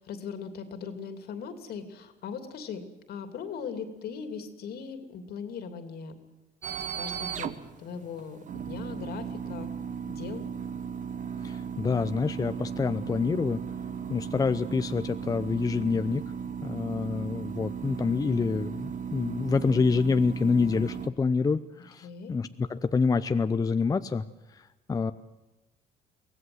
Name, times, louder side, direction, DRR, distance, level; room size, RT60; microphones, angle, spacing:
voice 1, 0.0-6.2 7.0-9.7 10.1-10.4 22.0-22.4, left 6 dB, 65° left, 8 dB, 2.9 m, -39 dB
sound 1, 6.6-21.1, right 7 dB, 45° right, 1.2 m, -36 dB
voice 2, 11.4-13.6 14.1-16.2 16.6-24.2 24.5-25.1, left 4 dB, 20° left, 11 dB, 0.7 m, -27 dB
23.5 x 17.0 x 7.9 m, 1.0 s
cardioid pair, 110°, 17 cm